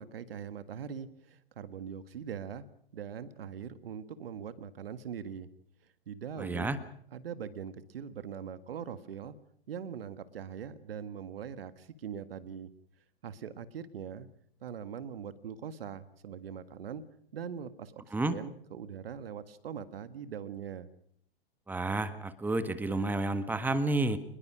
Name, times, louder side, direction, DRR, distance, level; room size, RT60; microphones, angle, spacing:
voice 1, 0.0-2.6 2.9-5.5 6.1-6.7 7.1-9.4 9.7-12.7 13.2-14.3 14.6-17.0 17.3-20.9, right 8 dB, 70° right, 13 dB, 1.8 m, -42 dB
voice 2, 6.4-6.8 18.1-18.4 21.7-24.2, right 2 dB, 5° right, 12 dB, 1.4 m, -30 dB
26.0 x 21.0 x 6.2 m, 0.64 s
hypercardioid pair, 110°, 30 cm